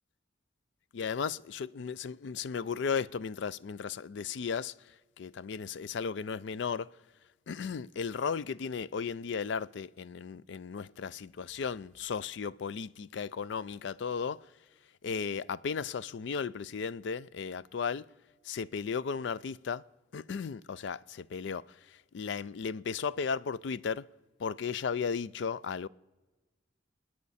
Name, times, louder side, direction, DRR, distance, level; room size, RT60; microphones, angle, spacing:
voice 1, 0.9-4.7 5.2-6.9 7.5-14.4 15.0-18.0 18.4-19.8 20.1-21.6 22.1-24.1 24.4-25.9, left 6 dB, 65° left, 0.4 m, -35 dB
28.5 x 9.7 x 4.1 m
head